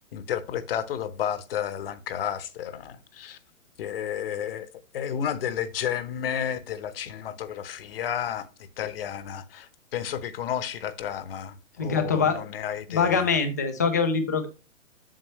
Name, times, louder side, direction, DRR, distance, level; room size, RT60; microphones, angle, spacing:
voice 1, 0.1-3.4 3.8-4.7 4.9-8.5 8.8-13.3, left 9 dB, 45° left, 0.9 m, -32 dB
voice 2, 11.8-12.4 12.9-14.5, left 5 dB, 15° left, 0.3 m, -24 dB
7.6 x 6.3 x 3.0 m
hypercardioid pair, 145°, 39 cm